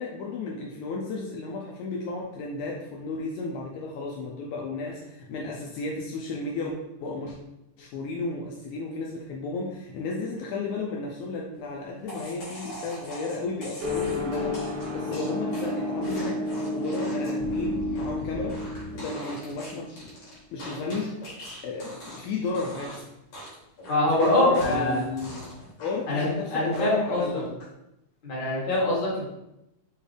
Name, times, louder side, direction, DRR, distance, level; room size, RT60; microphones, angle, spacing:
voice 1, 0.0-7.4 7.8-18.6 18.9-20.0 20.5-21.1 21.6-23.1 24.1-25.5 25.8-27.5, left 3 dB, 80° left, -1 dB, 1.9 m, -33 dB
sound 1, 12.1-22.3 22.5-23.0 23.3-26.3 26.7-27.2, left 1 dB, 60° left, 2.8 m, -41 dB
sound 2, 13.8-20.2, left 1 dB, 65° right, 1.8 m, -31 dB
voice 2, 23.9-25.0 26.1-27.4 28.2-29.3, left 1 dB, 45° left, -7 dB, 1.7 m, -24 dB
6.4 x 2.4 x 3.3 m, 0.88 s
omnidirectional pair, 3.6 m